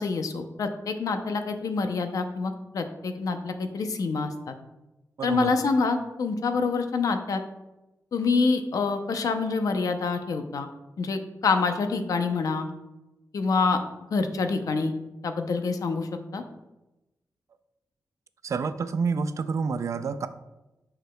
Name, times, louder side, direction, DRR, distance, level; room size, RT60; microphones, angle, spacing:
voice 1, 0.0-4.5 5.2-7.4 8.1-10.7 11.0-12.7 13.3-13.8 14.1-14.9 15.2-16.1 16.3-16.4, left 4 dB, 65° left, 7 dB, 0.6 m, -26 dB
voice 2, 5.2-5.5 18.4-20.3, right 5 dB, 50° right, 12 dB, 0.3 m, -28 dB
8.0 x 5.8 x 2.2 m, 1.0 s
wide cardioid pair, 170°, 7 cm